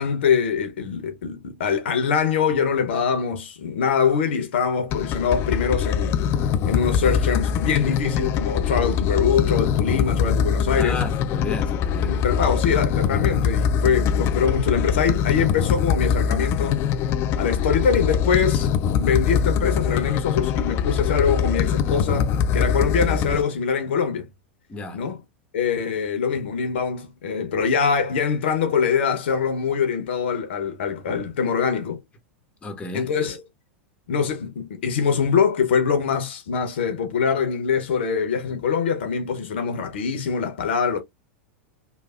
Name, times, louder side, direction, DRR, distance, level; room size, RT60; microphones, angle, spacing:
voice 1, 0.0-6.2 6.6-11.0 12.0-16.9 17.4-18.7 19.0-24.3 24.9-25.2 25.5-32.0 32.9-33.4 34.1-41.0, left 6 dB, 70° left, 0.8 m, -23 dB
sound 1, 4.9-23.4, left 7 dB, 40° left, 0.3 m, -23 dB
voice 2, 10.8-12.2 24.7-25.0 32.6-33.1, left 2 dB, 20° left, 1.0 m, -32 dB
3.2 x 2.3 x 2.3 m
hypercardioid pair, 95°, 6 cm